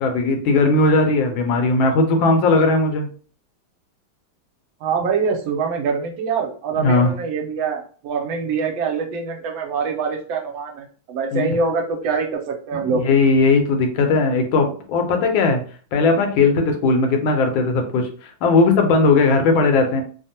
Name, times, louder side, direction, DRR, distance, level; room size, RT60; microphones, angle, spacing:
voice 1, 0.0-3.1 6.8-7.1 11.3-11.5 12.9-15.6 15.9-20.0, left 3 dB, 75° left, 4 dB, 1.3 m, -18 dB
voice 2, 4.8-13.0, right 5 dB, 80° right, 3 dB, 1.3 m, -24 dB
3.4 x 2.0 x 2.7 m, 0.42 s
omnidirectional pair, 2.2 m